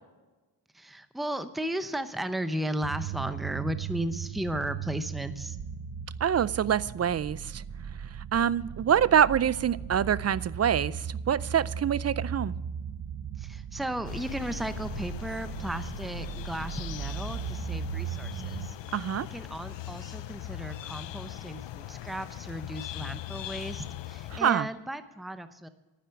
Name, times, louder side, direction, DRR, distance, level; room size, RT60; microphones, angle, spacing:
voice 1, 0.7-5.6 13.4-18.8 19.3-25.7, right 1 dB, ahead, 11 dB, 0.8 m, -35 dB
sound 1, 2.8-18.7, right 8 dB, 60° right, 0.9 m, -37 dB
voice 2, 6.2-7.6 8.3-12.5 18.9-19.3 24.3-24.7, right 9 dB, 40° right, 20 dB, 0.4 m, -25 dB
sound 2, 14.0-24.4, left 13 dB, 80° left, 0.7 m, -40 dB
11.0 x 10.0 x 7.0 m, 1.2 s
cardioid pair, 100°, 43 cm